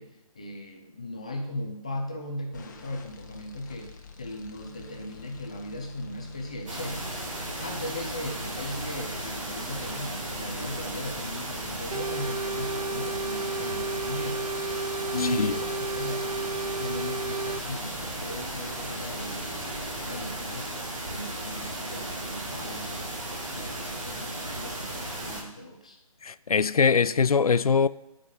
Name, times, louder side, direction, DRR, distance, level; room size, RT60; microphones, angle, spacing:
voice 1, 0.0-7.3 7.6-14.5 15.1-20.8 21.1-23.1 23.5-26.0, left 1 dB, 10° left, 0.4 m, -38 dB
sound 1, 2.5-20.3, left 4 dB, 30° left, 0.8 m, -47 dB
sound 2, 6.7-25.4, right 1 dB, 55° right, 2.2 m, -35 dB
sound 3, 11.9-17.6, right 3 dB, 80° right, 0.5 m, -33 dB
voice 2, 26.2-27.9, left 5 dB, 70° left, 0.4 m, -22 dB
12.5 x 5.0 x 5.4 m
figure-of-eight pair, 150°, 19 cm